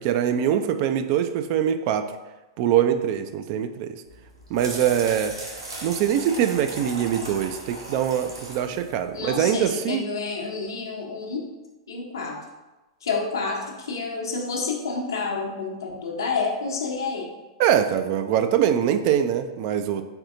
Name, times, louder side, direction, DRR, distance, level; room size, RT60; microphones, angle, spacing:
voice 1, 0.0-2.1 2.6-4.0 4.5-5.3 5.8-10.0 17.6-20.0, right 9 dB, 45° right, 8 dB, 0.3 m, -23 dB
sound 1, 4.1-9.6, right 1 dB, 80° right, 1.2 m, -38 dB
voice 2, 9.1-11.5 11.9-12.4 13.0-17.3, left 4 dB, 70° left, 0 dB, 0.9 m, -29 dB
4.3 x 4.0 x 2.6 m, 1.1 s
figure-of-eight pair, 100°, 2 cm